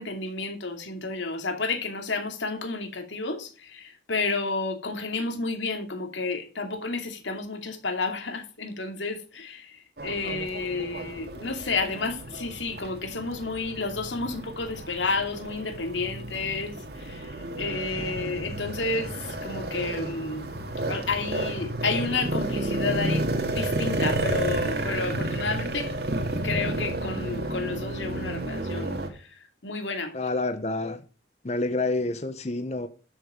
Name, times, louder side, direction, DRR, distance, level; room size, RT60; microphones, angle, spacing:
voice 1, 0.0-16.7 17.0-17.3 17.6-20.4 20.9-25.9 26.2-28.9 29.6-30.1, left 3 dB, 85° left, 2.6 m, -31 dB
sound 1, 10.0-29.1, right 1 dB, 60° right, 2.1 m, -31 dB
voice 2, 30.1-31.0 31.4-32.9, left 2 dB, 35° left, 0.8 m, -28 dB
12.5 x 6.6 x 5.1 m
head